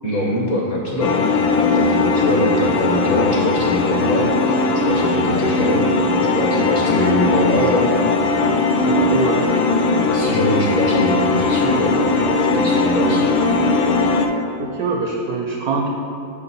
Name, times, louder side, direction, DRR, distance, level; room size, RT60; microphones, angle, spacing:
voice 1, 0.0-6.1 6.3-7.9 9.0-9.2 10.1-13.3, equal, 55° left, -3 dB, 0.9 m, -23 dB
sound 1, 1.0-14.3, left 3 dB, 85° left, 1.3 m, -18 dB
voice 2, 8.8-9.5 14.6-15.9, right 4 dB, 80° right, 0 dB, 0.8 m, -24 dB
5.8 x 5.7 x 4.0 m, 2.7 s
omnidirectional pair, 2.1 m